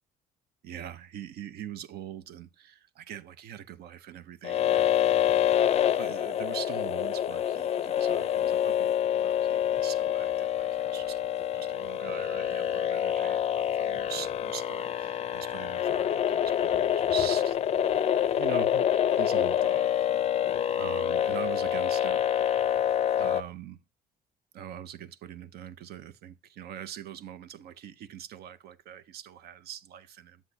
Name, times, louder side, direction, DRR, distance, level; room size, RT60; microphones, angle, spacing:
voice 1, 0.6-4.8 6.0-17.6 18.4-19.9 20.8-22.2 23.2-23.8 24.5-30.4, right 10 dB, 70° right, 0.7 m, -43 dB
sound 1, 4.4-23.4, left 10 dB, 40° left, 0.4 m, -27 dB
7.8 x 7.1 x 2.7 m
cardioid pair, 110°, 17 cm